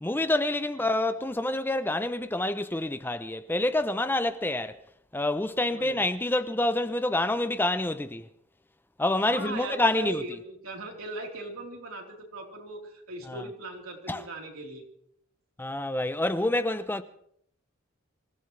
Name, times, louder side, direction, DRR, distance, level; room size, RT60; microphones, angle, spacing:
voice 1, 0.0-4.8 5.1-8.3 9.0-10.2 13.3-13.4 14.1-14.2 15.6-17.0, left 1 dB, 10° left, 0.5 m, -27 dB
voice 2, 5.7-6.0 9.3-14.8, right 2 dB, 80° right, 3.8 m, -39 dB
26.0 x 16.5 x 3.3 m
head